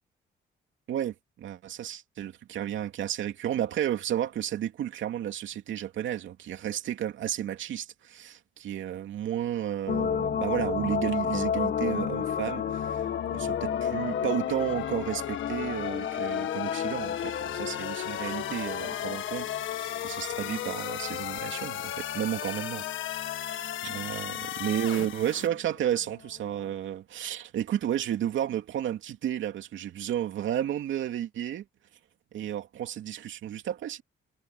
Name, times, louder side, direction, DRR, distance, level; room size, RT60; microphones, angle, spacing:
voice 1, 0.9-13.0 13.3-22.8 23.8-31.6 32.3-34.0, right 11 dB, 75° right, 2.8 m, -32 dB
sound 1, 9.9-25.6 26.0-26.1, left 7 dB, 55° left, 4.0 m, -34 dB
sound 2, 11.3-25.5, left 12 dB, 75° left, 1.6 m, -35 dB
cardioid pair, 90°, 20 cm